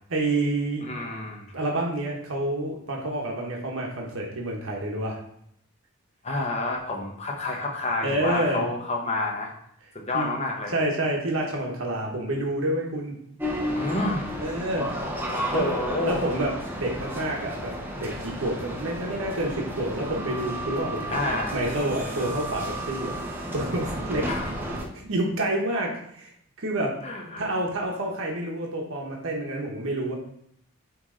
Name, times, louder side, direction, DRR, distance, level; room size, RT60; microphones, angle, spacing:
voice 1, 0.1-0.8 1.5-5.2 8.0-8.7 10.1-10.3 10.7-13.1 14.4-14.9 15.2-23.2 23.5-24.3 25.0-26.3 26.6-27.0 27.4-30.1, right 1 dB, 65° right, -1 dB, 1.1 m, -28 dB
voice 2, 0.8-1.5 6.2-9.5 9.9-10.8 13.7-14.5 15.3-16.2 21.1-21.7 24.3-24.5 27.0-27.5, left 2 dB, 30° left, 0 dB, 1.1 m, -29 dB
sound 1, 13.4-24.8, equal, 10° right, 0.7 m, -32 dB
8.1 x 3.3 x 3.8 m, 0.71 s
head